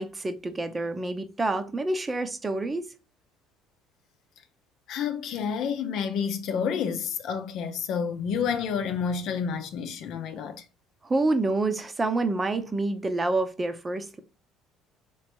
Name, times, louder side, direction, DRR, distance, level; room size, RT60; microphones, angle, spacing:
voice 1, 0.0-2.9 11.0-14.2, right 2 dB, 20° right, 0.7 m, -27 dB
voice 2, 4.9-10.6, left 7 dB, 65° left, 0.7 m, -29 dB
3.3 x 3.1 x 4.4 m
supercardioid pair, 85°, 0 cm